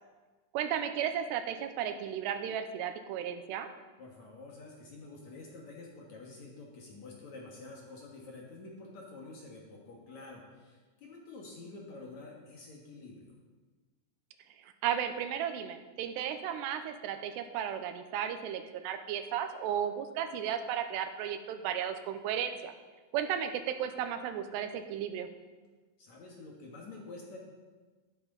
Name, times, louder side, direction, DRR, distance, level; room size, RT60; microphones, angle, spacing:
voice 1, 0.5-3.7 14.6-22.7 23.1-25.3, right 9 dB, 85° right, 8 dB, 2.9 m, -34 dB
voice 2, 4.0-13.4 26.0-27.4, left 3 dB, 55° left, -2 dB, 2.5 m, -48 dB
13.0 x 12.0 x 4.0 m, 1.3 s
omnidirectional pair, 4.8 m